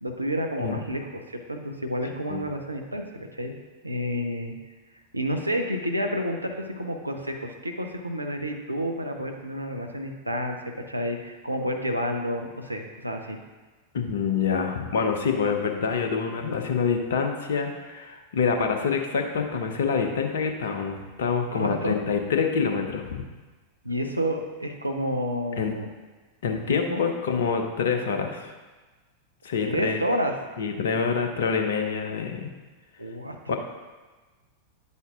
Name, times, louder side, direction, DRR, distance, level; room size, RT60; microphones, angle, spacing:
voice 1, 0.0-3.5 3.8-4.5 5.1-10.6 10.9-13.4 21.5-22.0 23.8-25.9 26.5-27.1 29.6-30.4 33.0-33.6, equal, 85° right, 3 dB, 0.8 m, -30 dB
voice 2, 13.9-23.2 25.6-25.7 26.4-28.5 29.4-30.0 30.6-32.5 33.5-33.6, left 6 dB, 60° left, 4 dB, 0.9 m, -26 dB
10.0 x 8.1 x 2.5 m, 1.3 s
figure-of-eight pair, 90°, 0 cm